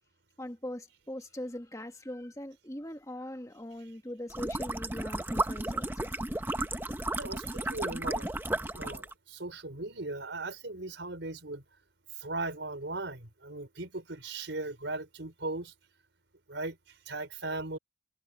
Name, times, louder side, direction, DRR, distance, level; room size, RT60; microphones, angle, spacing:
voice 1, 0.4-6.1 6.7-6.8, left 1 dB, 15° left, 1.7 m, -41 dB
sound 1, 4.3-9.1, right 2 dB, 10° right, 0.8 m, -33 dB
voice 2, 7.2-8.3 8.5-11.6 12.2-15.7 16.5-16.8 17.1-17.8, right 2 dB, 85° right, 4.3 m, -38 dB
head